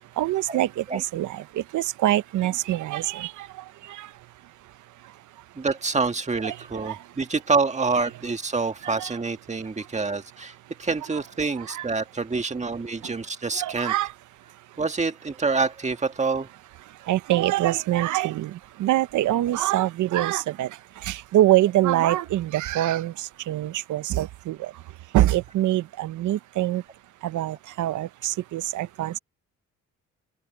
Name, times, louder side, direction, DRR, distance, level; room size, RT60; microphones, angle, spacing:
voice 1, 0.2-1.4 1.7-3.5 4.0-4.1 6.4-6.6 6.8-7.0 8.8-9.1 11.7-11.9 13.6-14.1 17.1-20.7 21.0-24.7 25.1-26.8 27.2-29.2, right 14 dB, 80° right, 0.9 m, -24 dB
voice 2, 5.6-13.9 14.8-16.5 19.5-19.7, right 4 dB, 25° right, 1.8 m, -27 dB
open air
cardioid pair, 90°, 30 cm